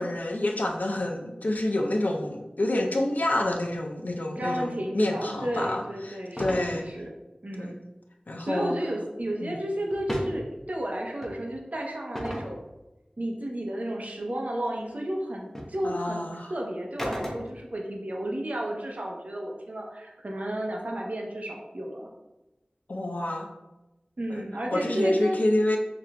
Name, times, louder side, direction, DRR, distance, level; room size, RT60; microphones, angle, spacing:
voice 1, 0.0-6.8 7.6-7.7 8.3-8.7 9.4-9.5 15.8-16.5 22.9-23.5 24.3-24.4 24.7-25.8, left 1 dB, 75° left, 1 dB, 0.5 m, -28 dB
voice 2, 4.4-7.1 7.4-7.8 8.4-12.6 13.2-22.1 24.2-25.4, right 1 dB, 60° right, -1 dB, 0.7 m, -32 dB
sound 1, 6.4-6.7 9.9-10.4 11.2-11.4 12.1-12.5 14.8-14.9 15.5-15.7 17.0-17.7, equal, 10° left, 0.7 m, -33 dB
5.8 x 2.4 x 2.2 m, 1.0 s
wide cardioid pair, 50°, 3 cm